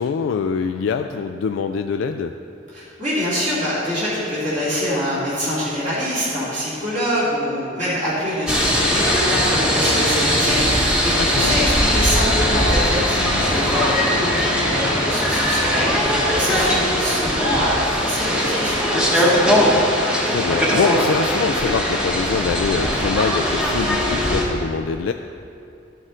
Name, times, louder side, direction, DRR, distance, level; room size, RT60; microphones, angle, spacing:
voice 1, 0.0-2.3 11.2-11.7 19.5-19.9 20.3-25.1, left 5 dB, 75° left, 6 dB, 0.3 m, -24 dB
voice 2, 2.7-19.6, equal, 40° right, -10 dB, 2.4 m, -25 dB
sound 1, 8.5-24.4, equal, 5° right, 1.1 m, -20 dB
12.0 x 6.3 x 3.8 m, 2.5 s
head